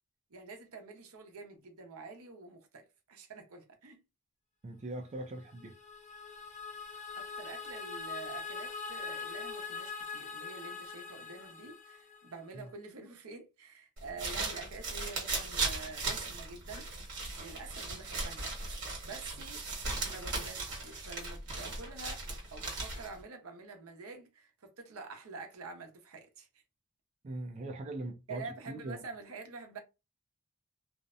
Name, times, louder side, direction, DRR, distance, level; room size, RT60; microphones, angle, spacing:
voice 1, 0.3-4.0 7.2-16.9 17.4-18.8 19.0-19.7 20.0-26.5 28.3-29.8, right 4 dB, 80° right, 0.8 m, -47 dB
voice 2, 4.6-5.7 12.5-12.6 27.2-29.0, right 2 dB, 30° right, 0.4 m, -41 dB
sound 1, 5.3-12.5, left 5 dB, 35° left, 0.5 m, -43 dB
sound 2, 14.0-23.2, right 3 dB, 55° right, 1.2 m, -37 dB
2.5 x 2.1 x 2.4 m
head